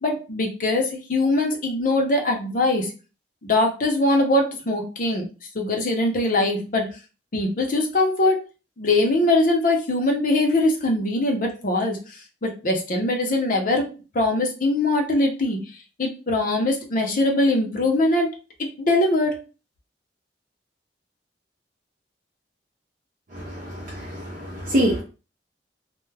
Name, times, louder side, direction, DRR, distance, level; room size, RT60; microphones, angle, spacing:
voice 1, 0.0-2.9 3.4-5.3 5.5-6.9 7.3-8.4 8.8-13.9 14.1-15.6 16.0-18.3 18.6-19.4, left 2 dB, 50° left, 2 dB, 0.6 m, -22 dB
voice 2, 23.3-25.0, equal, 45° right, -3 dB, 0.5 m, -25 dB
2.2 x 2.1 x 3.2 m, 0.33 s
head